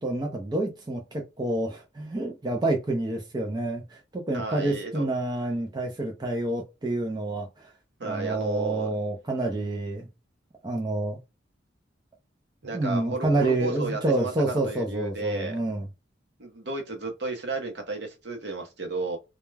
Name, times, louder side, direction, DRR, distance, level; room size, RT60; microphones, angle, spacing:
voice 1, 0.0-7.7 8.0-10.1 10.6-11.2 12.6-15.8, right 2 dB, 20° right, 0.4 m, -28 dB
voice 2, 4.3-5.1 8.0-8.9 12.6-15.6 16.4-19.2, right 3 dB, 60° right, 0.7 m, -33 dB
2.2 x 2.1 x 3.1 m
head